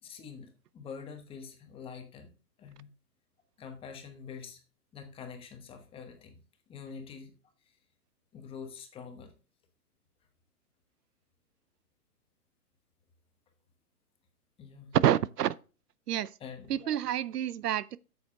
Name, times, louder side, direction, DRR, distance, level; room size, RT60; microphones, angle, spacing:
voice 1, 0.0-2.3 2.6-2.9 3.6-4.6 4.9-6.4 6.7-7.3 8.3-9.3 14.6-14.9 16.4-16.9, left 6 dB, 10° left, 1.0 m, -45 dB
voice 2, 14.9-15.6 16.1-16.4 16.7-18.0, right 11 dB, 80° right, 0.6 m, -28 dB
8.7 x 7.1 x 3.6 m
hypercardioid pair, 145°, 47 cm